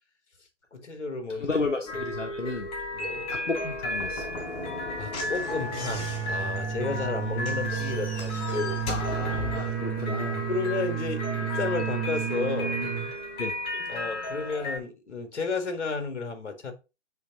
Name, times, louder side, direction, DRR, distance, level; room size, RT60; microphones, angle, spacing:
voice 1, 0.7-1.6 2.9-3.3 5.0-9.1 10.5-12.8 13.9-16.7, left 4 dB, 65° left, 1.9 m, -32 dB
voice 2, 1.4-2.7 3.3-4.2 8.9-10.5 13.4-13.5, left 3 dB, 90° left, 1.3 m, -32 dB
sound 1, 1.9-14.8, left 1 dB, 15° left, 1.1 m, -34 dB
Slam / Knock, 3.9-9.8, left 3 dB, 35° left, 3.6 m, -38 dB
sound 2, 5.7-13.1, right 10 dB, 35° right, 1.7 m, -32 dB
8.3 x 3.5 x 3.7 m
figure-of-eight pair, 130°, 36 cm